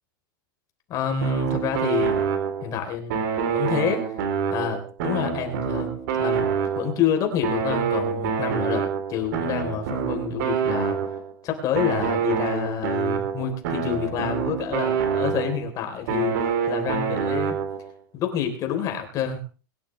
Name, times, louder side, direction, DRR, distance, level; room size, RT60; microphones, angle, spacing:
voice 1, 0.9-2.2 2.6-3.2 3.5-4.2 4.5-6.5 6.8-11.0 11.4-17.6 18.1-19.5, left 7 dB, 30° left, 5 dB, 3.4 m, -28 dB
sound 1, 1.2-2.8 3.1-7.1 7.4-11.3 11.7-15.7 16.1-17.9, right 6 dB, 60° right, 3.2 m, -26 dB
22.0 x 11.5 x 3.2 m, 0.34 s
supercardioid pair, 155°, 11 cm